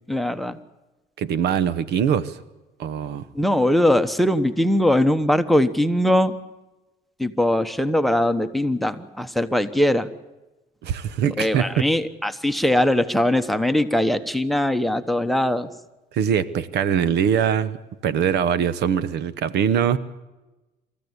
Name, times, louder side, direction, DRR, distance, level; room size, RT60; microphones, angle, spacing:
voice 1, 0.1-0.6 3.3-6.3 7.2-10.1 11.4-15.7, left 1 dB, ahead, 13 dB, 1.1 m, -21 dB
voice 2, 1.2-2.4 2.8-3.2 10.8-11.8 16.1-17.8 18.0-20.0, right 8 dB, 75° right, 15 dB, 1.1 m, -22 dB
27.0 x 14.0 x 8.2 m, 1.1 s
cardioid pair, 110°, 17 cm